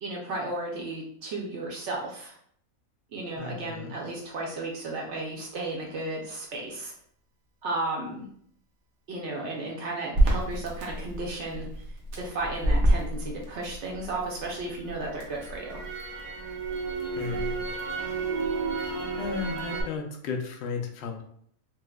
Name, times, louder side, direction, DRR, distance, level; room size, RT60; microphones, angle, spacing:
voice 1, 0.0-2.4 3.1-6.9 7.6-8.3 9.1-11.7 12.1-15.8, right 2 dB, 65° right, -1 dB, 0.9 m, -34 dB
voice 2, 3.4-3.9 17.2-17.6 19.2-21.2, left 5 dB, 65° left, 4 dB, 0.7 m, -34 dB
Crackle, 10.1-14.3 14.7-19.8, right 2 dB, 85° right, 1.2 m, -28 dB
4.5 x 2.1 x 2.2 m, 0.64 s
omnidirectional pair, 1.4 m